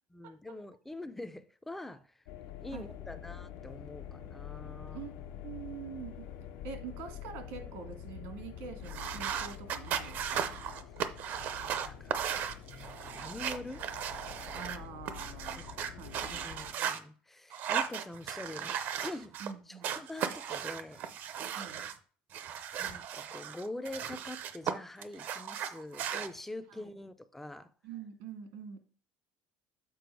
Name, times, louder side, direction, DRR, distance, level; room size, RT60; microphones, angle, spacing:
voice 1, 0.1-2.1 2.6-5.1 11.6-12.2 12.7-13.8 15.6-15.7 16.3-19.3 19.7-21.0 22.8-27.7, left 2 dB, 5° left, 0.4 m, -44 dB
sound 1, 2.3-16.7, left 9 dB, 80° left, 0.8 m, -46 dB
voice 2, 5.4-6.2 6.6-10.6 14.5-15.7 16.0-16.5 19.4-20.0 21.5-21.8 26.7-26.9 27.8-28.8, right 6 dB, 80° right, 1.7 m, -45 dB
sound 2, 8.8-17.0 17.5-19.5 19.8-21.9 22.3-24.7 25.0-26.3, right 9 dB, 45° right, 0.6 m, -36 dB
6.9 x 4.7 x 4.6 m
cardioid pair, 165°, 4 cm